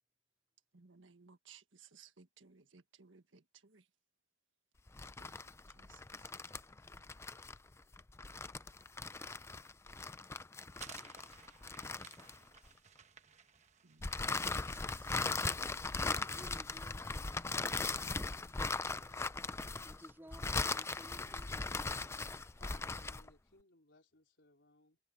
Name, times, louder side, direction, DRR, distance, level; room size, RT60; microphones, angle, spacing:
voice 1, 0.7-3.8 5.2-5.3 5.8-6.0 13.8-15.2, right 6 dB, 85° right, 1.6 m, -62 dB
sound 1, 4.9-12.7 14.0-23.3, left 3 dB, 15° left, 0.4 m, -39 dB
sound 2, 10.7-15.7, right 7 dB, 35° right, 1.1 m, -58 dB
voice 2, 16.2-17.7 19.8-21.7, equal, 10° right, 2.4 m, -57 dB
voice 3, 22.5-25.0, left 2 dB, 65° left, 4.4 m, -64 dB
head